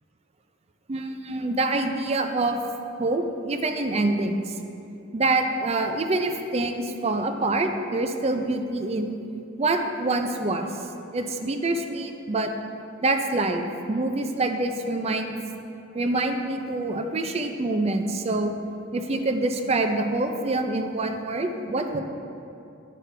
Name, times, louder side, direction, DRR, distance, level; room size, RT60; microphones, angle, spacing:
voice 1, 0.9-2.6 3.0-4.5 5.1-9.2 9.6-10.7 11.1-12.5 13.0-15.4 15.9-18.6 18.9-22.0, right 2 dB, 30° right, 6 dB, 0.4 m, -26 dB
9.3 x 6.3 x 3.3 m, 2.7 s
head